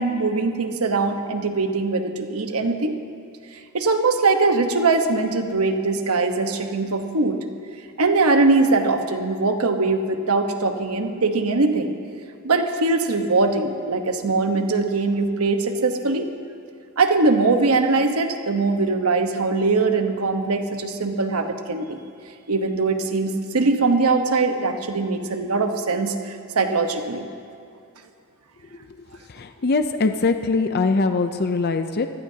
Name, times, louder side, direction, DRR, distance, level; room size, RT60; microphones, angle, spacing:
voice 1, 0.0-3.0 3.7-7.4 8.0-11.9 12.4-16.3 17.0-22.0 22.5-27.3, right 3 dB, 80° right, 5 dB, 1.2 m, -21 dB
voice 2, 28.7-32.1, left 3 dB, 45° left, 8 dB, 0.5 m, -23 dB
24.0 x 17.0 x 2.8 m, 2.4 s
head